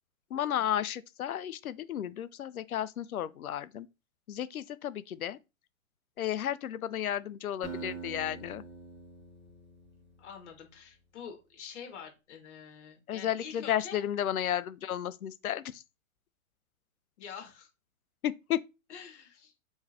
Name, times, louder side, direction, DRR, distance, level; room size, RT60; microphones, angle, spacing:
voice 1, 0.3-3.9 4.3-5.4 6.2-8.6 13.1-15.8 18.2-18.6, left 10 dB, 90° left, 0.5 m, -33 dB
Acoustic guitar, 7.6-10.6, right 5 dB, 5° right, 1.1 m, -45 dB
voice 2, 10.2-14.0 17.2-17.7 18.9-19.5, left 7 dB, 55° left, 1.6 m, -46 dB
3.7 x 3.1 x 2.8 m
hypercardioid pair, 125°, 42 cm